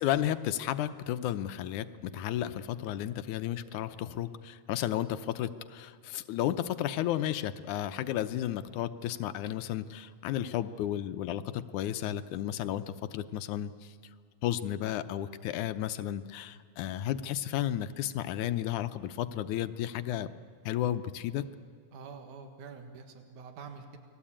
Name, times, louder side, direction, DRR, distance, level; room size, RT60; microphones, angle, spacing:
voice 1, 0.0-13.9 14.4-20.3 20.7-21.4, left 12 dB, 85° left, 11 dB, 2.3 m, -33 dB
voice 2, 21.9-24.0, right 5 dB, 80° right, 5 dB, 3.2 m, -46 dB
29.5 x 21.0 x 8.8 m, 2.2 s
omnidirectional pair, 3.4 m